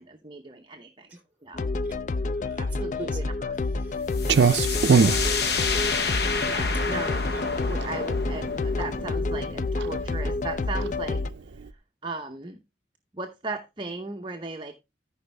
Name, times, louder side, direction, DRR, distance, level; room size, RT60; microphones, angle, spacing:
voice 1, 0.0-1.1 1.4-1.7 2.6-3.5 6.5-11.2 12.0-12.6 13.1-14.7, right 3 dB, 25° right, 0.8 m, -37 dB
sound 1, 1.5-11.3, left 3 dB, 45° left, 0.4 m, -29 dB
voice 2, 1.8-5.9 7.2-7.4, right 3 dB, 10° right, 2.9 m, -50 dB
sound 2, 4.1-11.7, left 5 dB, 60° left, 0.9 m, -31 dB
Clock, 4.2-11.7, right 5 dB, 70° right, 0.4 m, -26 dB
14.0 x 5.4 x 3.3 m
head